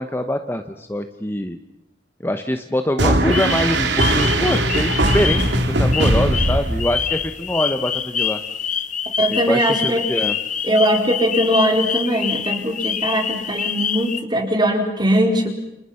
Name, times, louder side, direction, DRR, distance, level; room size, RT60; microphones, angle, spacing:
voice 1, 0.0-1.6 2.2-8.4 9.3-10.4, left 1 dB, 15° left, 6 dB, 1.1 m, -24 dB
sound 1, 3.0-7.3, right 1 dB, 75° right, 3.0 m, -19 dB
sound 2, 3.3-5.7 5.9-14.2, left 8 dB, 45° left, 1.3 m, -26 dB
voice 2, 9.2-10.0 10.6-15.5, equal, 25° right, 3 dB, 4.5 m, -20 dB
30.0 x 28.5 x 5.9 m, 0.84 s
head